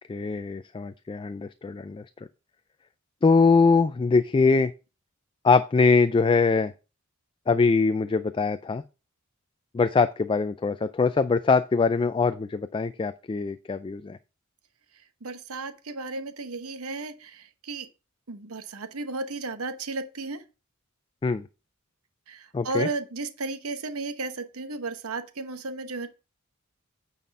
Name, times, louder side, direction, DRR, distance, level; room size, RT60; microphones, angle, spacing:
voice 1, 0.1-2.0 3.2-4.7 5.4-6.7 7.5-8.8 9.7-14.2 21.2-21.5 22.5-22.9, left 4 dB, 25° left, 0.3 m, -22 dB
voice 2, 15.2-17.9 18.3-20.4 22.3-26.1, right 3 dB, 90° right, 0.9 m, -34 dB
9.2 x 4.2 x 5.3 m
head